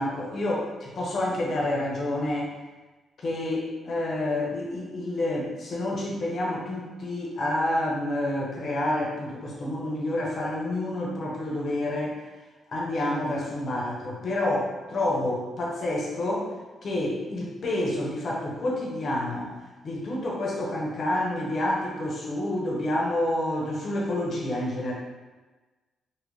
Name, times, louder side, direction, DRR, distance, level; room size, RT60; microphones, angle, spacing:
voice 1, 0.0-2.5 3.2-12.2 12.7-16.5 16.8-19.5 19.8-24.9, left 1 dB, 50° left, -3 dB, 0.8 m, -28 dB
2.8 x 2.5 x 3.2 m, 1.2 s
cardioid pair, 115°, 0 cm